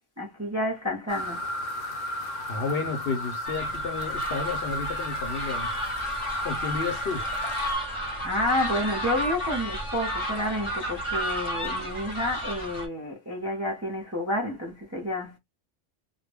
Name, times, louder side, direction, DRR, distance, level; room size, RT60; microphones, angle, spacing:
voice 1, 0.2-1.4 8.2-15.4, left 1 dB, 20° right, 0.5 m, -30 dB
sound 1, 1.1-7.8, left 1 dB, 85° left, 1.0 m, -33 dB
voice 2, 2.5-5.7 6.4-7.3, left 4 dB, 60° left, 0.8 m, -32 dB
sound 2, 3.4-12.9, equal, 30° left, 0.8 m, -32 dB
2.3 x 2.1 x 3.3 m
omnidirectional pair, 1.3 m